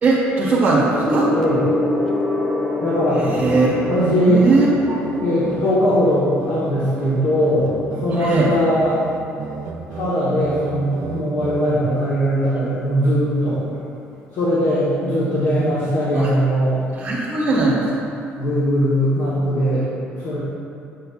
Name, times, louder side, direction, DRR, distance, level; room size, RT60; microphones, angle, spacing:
voice 1, 0.0-1.3 3.1-3.7 4.0-5.0 8.2-8.5 15.6-15.7 16.1-16.3 16.9-17.9, right 3 dB, 30° right, -11 dB, 1.5 m, -19 dB
Gong, 1.0-10.8 11.7-12.0, left 1 dB, 10° left, 0.6 m, -27 dB
voice 2, 1.3-1.7 2.8-3.3 3.9-4.4 5.2-9.0 9.9-13.6 14.3-16.8 18.4-19.9 20.2-20.4, equal, 65° left, -8 dB, 1.3 m, -20 dB
sound 1, 3.4-11.8, right 5 dB, 85° right, 0.6 m, -34 dB
8.4 x 6.6 x 2.5 m, 2.6 s
cardioid pair, 130°, 5 cm